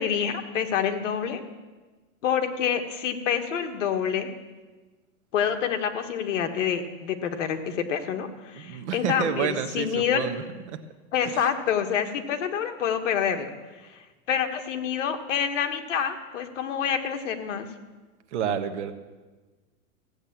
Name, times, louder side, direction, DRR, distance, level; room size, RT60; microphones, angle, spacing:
voice 1, 0.0-1.4 2.2-4.3 5.3-10.2 11.1-13.5 13.8-14.0 14.3-17.7, left 8 dB, 60° left, 6 dB, 1.5 m, -27 dB
voice 2, 8.5-10.4 18.3-18.9, right 8 dB, 55° right, 8 dB, 1.3 m, -29 dB
15.5 x 8.6 x 7.4 m, 1.3 s
supercardioid pair, 165°, 42 cm